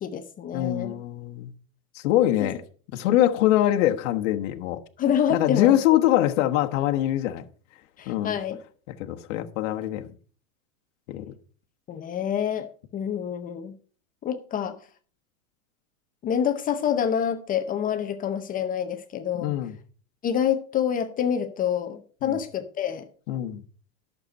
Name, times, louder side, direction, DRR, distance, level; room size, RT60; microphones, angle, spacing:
voice 1, 0.0-1.0 2.4-2.5 5.0-5.8 8.0-8.6 11.9-13.7 14.2-14.8 16.2-19.5 20.2-23.1, left 8 dB, 20° left, 0.7 m, -27 dB
voice 2, 0.5-1.5 1.9-2.6 2.9-4.8 5.3-7.4 8.1-8.4 9.0-10.1 11.1-11.3 19.4-19.7 22.2-22.4 23.3-23.6, left 13 dB, 60° left, 1.2 m, -23 dB
11.5 x 6.8 x 5.3 m
supercardioid pair, 150°, 42 cm